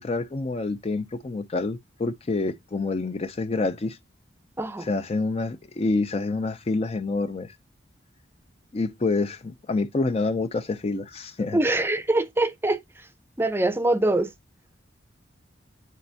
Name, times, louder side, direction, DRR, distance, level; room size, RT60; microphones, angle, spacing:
voice 1, 0.0-4.0 4.8-7.5 8.7-11.6, left 3 dB, 35° left, 0.4 m, -27 dB
voice 2, 4.6-4.9 11.5-12.8 13.4-14.3, right 2 dB, 10° right, 0.6 m, -23 dB
8.2 x 4.2 x 2.7 m
head